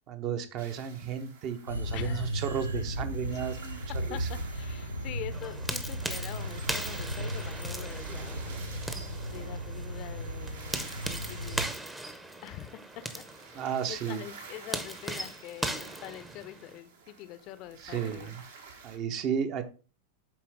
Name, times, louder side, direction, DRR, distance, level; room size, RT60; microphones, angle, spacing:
voice 1, 0.1-3.8 4.1-4.3 13.5-14.2 17.8-18.3 18.8-19.6, right 8 dB, 40° right, 0.8 m, -33 dB
sound 1, 0.6-19.0, right 5 dB, 60° right, 1.3 m, -51 dB
sound 2, 1.7-11.7, equal, 85° right, 0.8 m, -36 dB
voice 2, 1.9-2.3 3.3-3.4 4.1-8.6 9.2-11.7 12.4-13.3 13.6-18.4 18.7-18.8, left 13 dB, 40° left, 0.6 m, -44 dB
sound 3, 5.3-16.8, right 1 dB, 5° right, 0.7 m, -39 dB
7.2 x 4.5 x 3.5 m
figure-of-eight pair, 90°, 0 cm